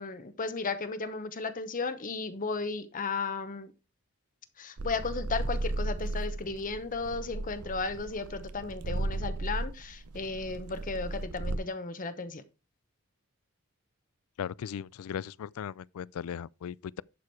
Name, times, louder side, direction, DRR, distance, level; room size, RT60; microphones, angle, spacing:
voice 1, 0.0-3.7 4.6-12.4, left 4 dB, 40° left, 0.8 m, -35 dB
sound 1, 4.8-11.6, right 2 dB, 85° right, 0.8 m, -35 dB
voice 2, 14.4-17.0, left 8 dB, 75° left, 0.3 m, -37 dB
11.5 x 4.8 x 4.5 m
head